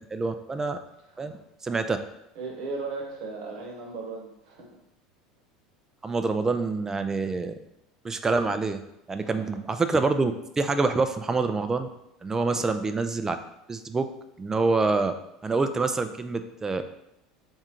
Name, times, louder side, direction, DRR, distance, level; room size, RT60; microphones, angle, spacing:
voice 1, 0.1-0.8 1.2-1.3 1.6-2.0 6.0-7.5 8.0-8.8 9.1-11.9 12.2-13.4 13.7-14.1 14.4-15.1 15.4-16.9, right 3 dB, 20° right, 9 dB, 0.4 m, -26 dB
voice 2, 2.3-4.7 9.2-9.4 12.4-12.6, right 3 dB, 60° right, 0 dB, 1.1 m, -37 dB
3.6 x 2.4 x 4.3 m, 0.81 s
hypercardioid pair, 80°, 3 cm